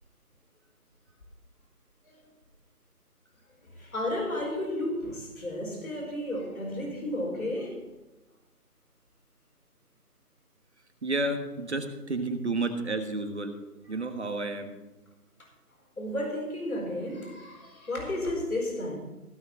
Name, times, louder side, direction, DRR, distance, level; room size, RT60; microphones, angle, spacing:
voice 1, 3.7-7.9 13.9-14.0 16.0-19.0, left 1 dB, 60° left, 4.5 m, -33 dB
voice 2, 11.0-13.5 13.9-14.8, right 2 dB, 45° right, 1.4 m, -31 dB
16.0 x 6.1 x 7.3 m
figure-of-eight pair, 170°, 47 cm